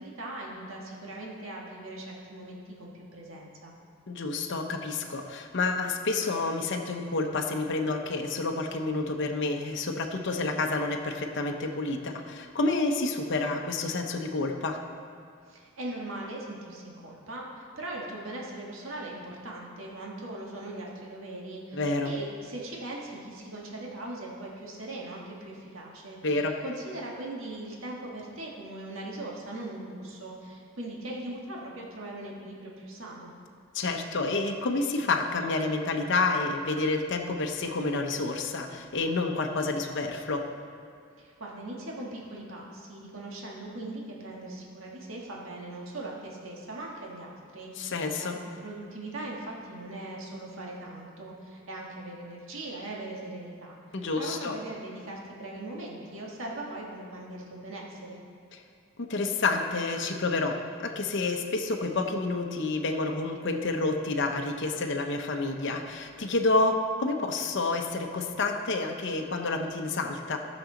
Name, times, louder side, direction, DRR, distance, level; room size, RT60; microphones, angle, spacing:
voice 1, 0.0-3.7 15.5-26.2 26.6-33.3 41.2-53.8 54.2-58.2, right 1 dB, 80° right, -2 dB, 1.5 m, -40 dB
voice 2, 4.1-14.8 21.7-22.2 26.2-26.6 33.7-40.5 47.8-48.4 53.9-54.6 58.5-58.6 59.0-70.4, left 3 dB, 60° left, 3 dB, 0.8 m, -29 dB
16.5 x 6.3 x 3.8 m, 2.2 s
head